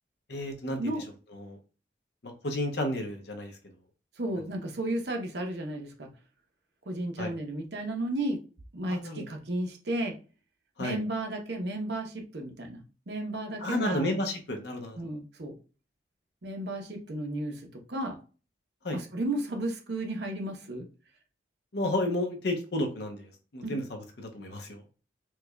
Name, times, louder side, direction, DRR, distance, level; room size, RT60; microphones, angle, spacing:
voice 1, 0.3-0.9 1.4-1.6 2.2-3.5 7.2-7.3 8.9-9.3 10.8-11.0 13.6-15.0 18.8-19.0 21.7-24.8, left 1 dB, 60° left, 4 dB, 0.8 m, -32 dB
voice 2, 4.2-6.1 6.9-8.4 8.7-10.2 10.8-14.1 15.0-15.5 16.4-18.2 18.9-20.9 23.6-23.8, right 1 dB, 65° right, 3 dB, 0.8 m, -33 dB
4.5 x 2.4 x 2.2 m, 0.35 s
head